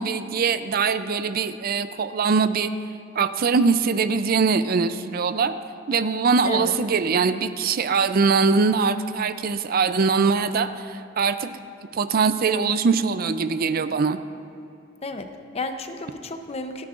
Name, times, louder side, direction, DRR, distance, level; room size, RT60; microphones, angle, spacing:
voice 1, 0.0-2.7 3.2-5.5 5.9-11.5 11.9-14.2, right 5 dB, 50° right, 11 dB, 0.4 m, -22 dB
voice 2, 15.0-16.8, left 3 dB, 35° left, 7 dB, 0.7 m, -32 dB
25.5 x 9.6 x 2.5 m, 2.6 s
head